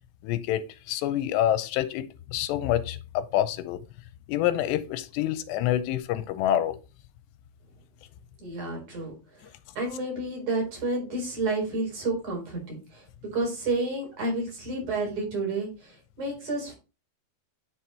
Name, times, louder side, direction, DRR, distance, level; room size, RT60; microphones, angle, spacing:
voice 1, 0.2-3.8 4.3-6.8, left 12 dB, 85° left, 2.9 m, -27 dB
voice 2, 8.4-9.1 9.8-13.0 13.3-16.7, right 2 dB, 45° right, 5.3 m, -30 dB
9.9 x 4.5 x 4.4 m
omnidirectional pair, 4.8 m